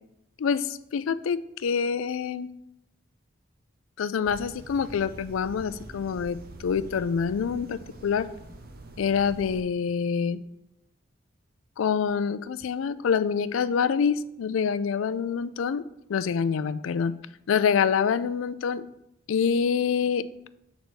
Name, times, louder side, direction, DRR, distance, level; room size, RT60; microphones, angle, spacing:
voice 1, 0.4-2.5 4.0-8.3 9.0-10.4 11.8-15.8 16.1-17.1 17.5-18.8 19.3-20.2, left 6 dB, 85° left, 15 dB, 0.4 m, -26 dB
sound 1, 4.2-9.6, right 2 dB, 50° right, 0.7 m, -45 dB
6.5 x 4.1 x 6.2 m, 0.82 s
head